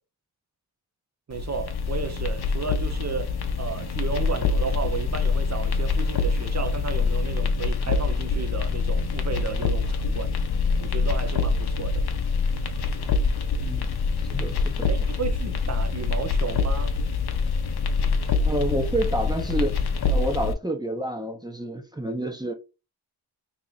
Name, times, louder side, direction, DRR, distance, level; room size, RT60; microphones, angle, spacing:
sound 1, 1.3-20.5, left 4 dB, 65° left, 0.7 m, -25 dB
voice 1, 1.3-10.3 10.8-12.0 14.9-16.9, right 5 dB, 40° right, 0.7 m, -33 dB
voice 2, 13.6-13.9 14.3-14.9 18.4-19.8 20.1-22.5, right 1 dB, 10° right, 0.8 m, -29 dB
3.0 x 2.9 x 3.9 m
cardioid pair, 45°, 41 cm